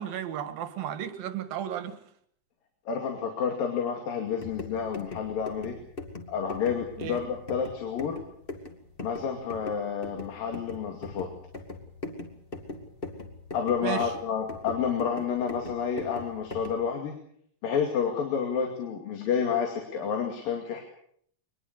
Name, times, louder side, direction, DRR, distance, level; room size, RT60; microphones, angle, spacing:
voice 1, 0.0-2.0 7.0-7.2 13.8-14.1, right 10 dB, 90° right, 10 dB, 3.4 m, -34 dB
voice 2, 2.9-5.8 6.3-8.2 9.0-11.3 13.5-17.1 17.6-20.8, left 7 dB, 80° left, 3 dB, 4.2 m, -29 dB
sound 1, 4.3-16.9, left 2 dB, 20° left, 1.7 m, -41 dB
23.5 x 20.5 x 6.8 m, 0.65 s
omnidirectional pair, 4.0 m